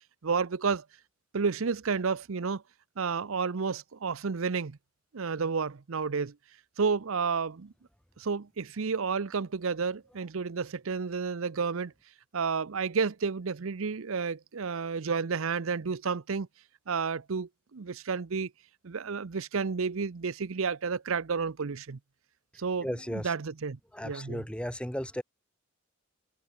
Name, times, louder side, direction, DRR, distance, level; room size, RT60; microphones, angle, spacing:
voice 1, 0.2-0.8 1.3-2.6 3.0-4.8 5.1-6.3 6.8-7.7 8.2-11.9 12.3-16.5 16.9-18.5 18.8-22.0 22.6-24.4, right 5 dB, 70° right, 0.6 m, -31 dB
voice 2, 22.8-23.3 23.9-25.2, equal, 5° left, 2.2 m, -35 dB
head